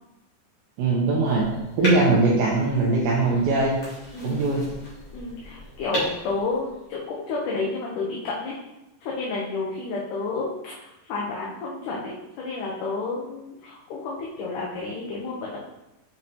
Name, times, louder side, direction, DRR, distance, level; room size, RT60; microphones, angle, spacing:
voice 1, 0.8-1.5 1.8-3.8 4.2-4.6, right 3 dB, 80° right, -4 dB, 2.5 m, -21 dB
sound 1, 1.2-7.1, equal, 35° left, 2.3 m, -35 dB
voice 2, 5.1-8.6 9.0-15.6, left 3 dB, 75° left, -3 dB, 2.1 m, -31 dB
7.4 x 4.7 x 2.8 m, 0.95 s
omnidirectional pair, 4.1 m